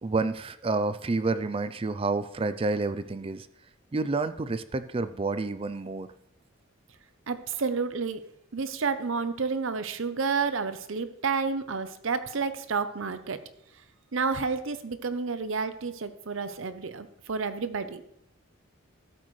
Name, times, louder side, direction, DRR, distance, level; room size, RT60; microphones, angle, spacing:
voice 1, 0.0-3.5 3.9-6.1, right 3 dB, 25° right, 13 dB, 0.4 m, -29 dB
voice 2, 7.3-8.2 8.5-13.4 14.1-18.0, right 5 dB, 65° right, 12 dB, 0.7 m, -30 dB
13.5 x 7.8 x 3.2 m, 0.77 s
head